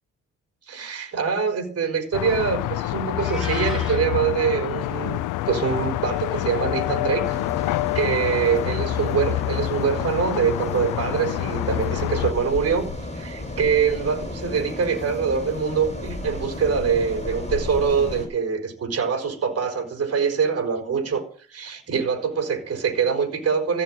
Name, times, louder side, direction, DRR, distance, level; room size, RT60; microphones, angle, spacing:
voice 1, 0.7-5.2 5.4-7.4 7.9-21.2 21.5-23.8, right 6 dB, 55° right, 6 dB, 4.7 m, -24 dB
sound 1, 2.1-12.3, left 16 dB, 90° left, 0.6 m, -27 dB
Meow, 3.2-4.0, right 1 dB, ahead, 6.5 m, -35 dB
sound 2, 7.2-18.3, left 2 dB, 20° left, 5.8 m, -34 dB
15.5 x 6.7 x 9.0 m, 0.42 s
cardioid pair, 90°, 30 cm